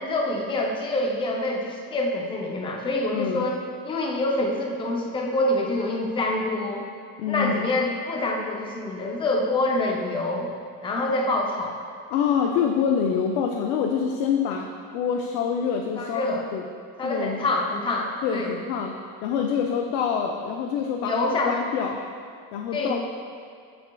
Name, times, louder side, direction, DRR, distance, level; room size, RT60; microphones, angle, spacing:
voice 1, 0.0-3.6 3.8-6.8 7.3-10.5 10.8-11.8 16.0-16.4 17.0-18.5 21.0-21.5 22.7-23.0, left 2 dB, 15° left, -1 dB, 0.5 m, -26 dB
voice 2, 3.1-3.5 7.2-7.7 12.1-16.7 17.0-17.5 18.2-19.0 19.2-21.2 21.4-22.0 22.5-23.0, left 7 dB, 70° left, 1 dB, 0.5 m, -26 dB
7.6 x 7.0 x 2.3 m, 2.3 s
cardioid pair, 165°, 33 cm